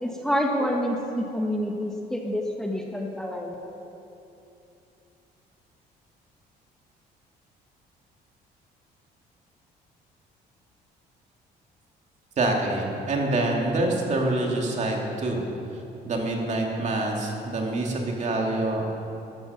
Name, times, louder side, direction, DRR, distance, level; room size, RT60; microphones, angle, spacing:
voice 1, 0.0-3.5, equal, 5° left, 0 dB, 1.3 m, -27 dB
voice 2, 12.4-15.4 16.0-18.9, right 2 dB, 45° right, 0 dB, 2.7 m, -26 dB
13.5 x 13.5 x 5.9 m, 2.8 s
cardioid pair, 110°, 17 cm